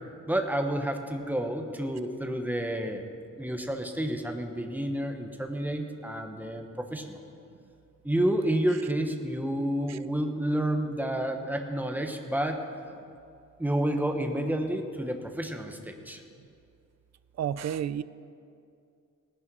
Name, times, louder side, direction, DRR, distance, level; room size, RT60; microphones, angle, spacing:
voice 1, 0.3-3.0 3.4-7.2 8.0-12.6 13.6-16.2, right 1 dB, 5° right, 4 dB, 1.0 m, -30 dB
voice 2, 17.4-18.0, right 9 dB, 55° right, 16 dB, 0.4 m, -30 dB
17.5 x 9.9 x 6.1 m, 2.4 s
wide cardioid pair, 175°, 33 cm